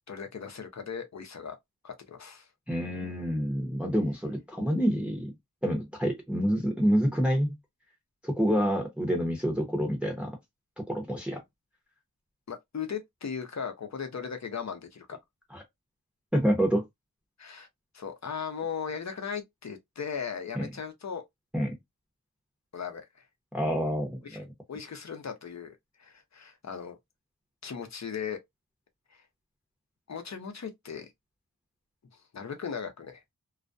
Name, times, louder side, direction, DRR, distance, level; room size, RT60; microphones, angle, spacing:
voice 1, 0.1-1.6 1.8-2.5 12.5-15.2 17.4-17.7 17.9-21.2 22.7-23.0 24.2-24.4 24.7-27.0 27.6-28.4 29.1-29.2 30.1-31.1 32.3-33.2, left 6 dB, 50° left, 0.7 m, -37 dB
voice 2, 2.7-5.3 5.6-7.6 8.2-10.4 10.8-11.4 15.5-15.6 16.3-16.8 20.6-20.7 21.5-21.8 23.5-24.5, equal, 5° right, 0.8 m, -27 dB
2.4 x 2.2 x 2.5 m
wide cardioid pair, 70°, 36 cm